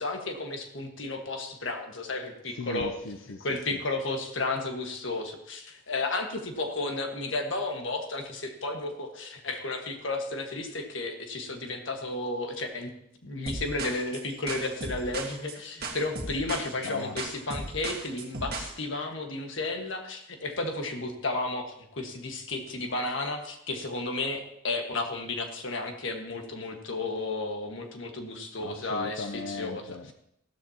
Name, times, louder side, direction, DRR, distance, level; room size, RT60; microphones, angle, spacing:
voice 1, 0.0-3.0 3.4-12.9 13.2-29.9, left 2 dB, 65° left, 4 dB, 1.6 m, -33 dB
voice 2, 2.5-3.8 16.8-17.2 28.6-30.1, left 3 dB, 90° left, 5 dB, 0.7 m, -38 dB
sound 1, 13.5-18.7, right 3 dB, 50° right, 1.8 m, -36 dB
15.0 x 13.0 x 2.9 m, 0.75 s
head